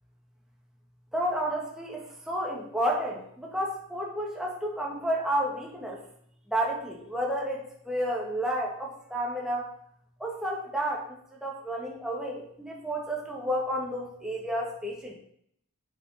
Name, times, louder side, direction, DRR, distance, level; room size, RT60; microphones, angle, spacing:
voice 1, 1.1-6.0 6.5-9.7 10.2-11.1 11.4-15.1, equal, 5° right, -3 dB, 2.2 m, -31 dB
8.5 x 6.8 x 5.9 m, 0.68 s
head